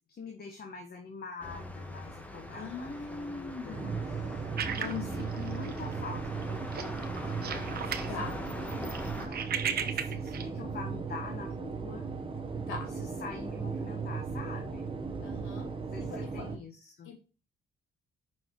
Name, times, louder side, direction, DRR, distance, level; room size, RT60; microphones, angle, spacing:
voice 1, 0.0-12.1 13.0-14.9 15.9-17.1, left 5 dB, 50° left, 2 dB, 1.5 m, -45 dB
sound 1, 1.4-9.3, left 1 dB, 5° left, 1.3 m, -42 dB
voice 2, 2.5-4.3 4.6-5.3 8.1-8.4 12.7-12.9 15.2-15.7 16.0-16.5 17.0-17.1, left 4 dB, 90° left, 3 dB, 2.4 m, -41 dB
sound 2, 3.7-16.6, right 5 dB, 25° right, 1.1 m, -37 dB
sound 3, 4.6-5.9 6.3-6.4 6.7-8.1 8.5-10.5, right 7 dB, 50° right, 1.0 m, -35 dB
6.0 x 4.5 x 4.7 m, 0.33 s
cardioid pair, 90°, 20 cm